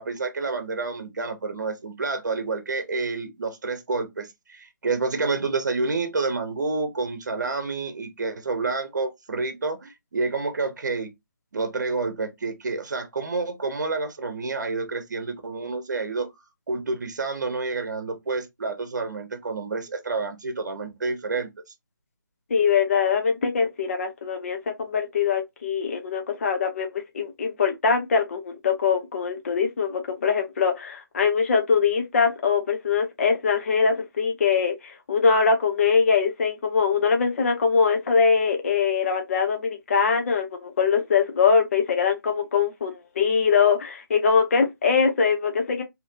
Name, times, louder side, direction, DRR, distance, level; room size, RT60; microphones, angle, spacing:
voice 1, 0.0-11.1 11.5-16.3 16.7-21.5, right 3 dB, 60° right, 0.8 m, -29 dB
voice 2, 22.5-45.8, left 5 dB, 40° left, 0.7 m, -22 dB
2.8 x 2.6 x 2.5 m
figure-of-eight pair, 155°, 11 cm